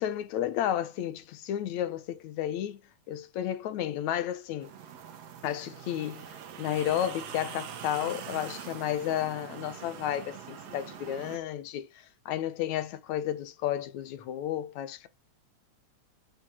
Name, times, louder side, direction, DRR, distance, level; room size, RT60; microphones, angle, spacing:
voice 1, 0.0-2.8 3.1-4.7 5.4-11.9 12.3-15.1, left 11 dB, 80° left, 2.3 m, -32 dB
sound 1, 4.6-11.4, right 8 dB, 65° right, 2.3 m, -43 dB
10.5 x 6.2 x 4.4 m
omnidirectional pair, 3.3 m